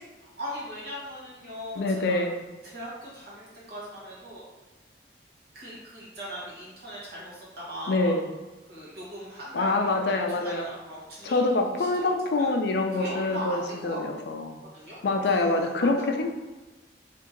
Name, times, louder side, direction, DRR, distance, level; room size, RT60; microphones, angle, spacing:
voice 1, 0.0-2.2 2.6-4.4 5.5-8.1 8.7-11.4 11.8-12.0 12.4-12.5 12.9-14.0 14.7-15.0 15.2-15.6, equal, 60° right, -6 dB, 1.3 m, -39 dB
voice 2, 1.8-2.4 7.9-8.3 9.5-10.7 11.2-14.6 15.0-16.3, left 2 dB, 65° left, 4 dB, 0.4 m, -25 dB
2.9 x 2.7 x 3.7 m, 1.2 s
head